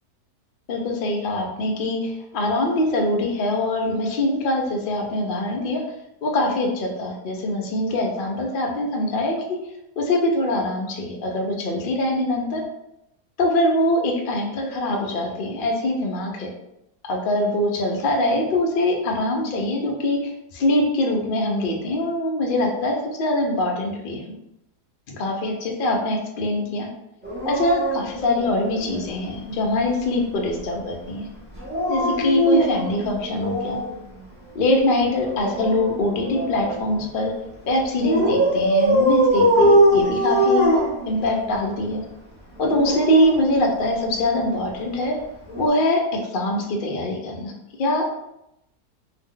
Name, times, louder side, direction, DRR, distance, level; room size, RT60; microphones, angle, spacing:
voice 1, 0.7-5.8 6.2-9.6 10.0-12.6 13.4-16.5 17.0-24.2 25.1-26.9 27.4-31.3 31.9-33.8 34.5-37.3 37.6-40.7 41.1-42.0 42.6-45.2 45.5-46.0 46.3-47.5 47.8-48.1, left 1 dB, 85° left, 1 dB, 0.4 m, -23 dB
Dog, 27.2-29.1 31.5-33.9 35.2-36.9 38.0-41.6 42.6-44.2 45.5-45.7, right 1 dB, 15° right, 0.4 m, -21 dB
2.8 x 2.0 x 3.6 m, 0.85 s
omnidirectional pair, 1.7 m